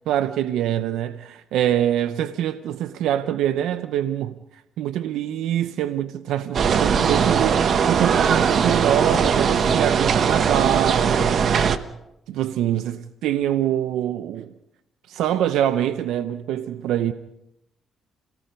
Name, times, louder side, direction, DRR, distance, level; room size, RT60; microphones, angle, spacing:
voice 1, 0.1-4.3 4.8-11.4 12.3-14.5 15.1-17.1, right 11 dB, 85° right, 0.7 m, -24 dB
sound 1, 6.5-11.8, right 7 dB, 55° right, 1.1 m, -20 dB
Run, 6.8-9.4 9.7-9.9 10.4-10.7 11.2-11.4, left 2 dB, 5° left, 7.4 m, -36 dB
28.0 x 18.5 x 5.3 m
cardioid pair, 90°, 0 cm